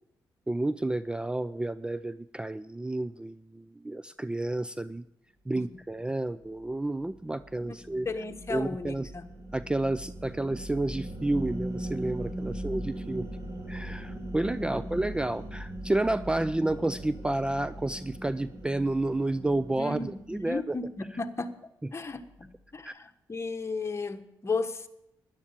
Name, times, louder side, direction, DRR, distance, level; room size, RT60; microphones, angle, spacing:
voice 1, 0.5-5.0 5.5-8.1 8.5-9.1 9.5-13.3 13.7-20.8 22.8-22.9, right 2 dB, 10° right, 16 dB, 0.4 m, -30 dB
sound 1, 6.5-21.0, right 1 dB, 35° right, 4.6 m, -40 dB
voice 2, 8.0-9.3 12.4-13.0 14.6-14.8 19.8-21.5 21.9-24.9, left 3 dB, 30° left, 7 dB, 1.3 m, -35 dB
12.0 x 10.5 x 7.3 m, 0.83 s
supercardioid pair, 65°, 8 cm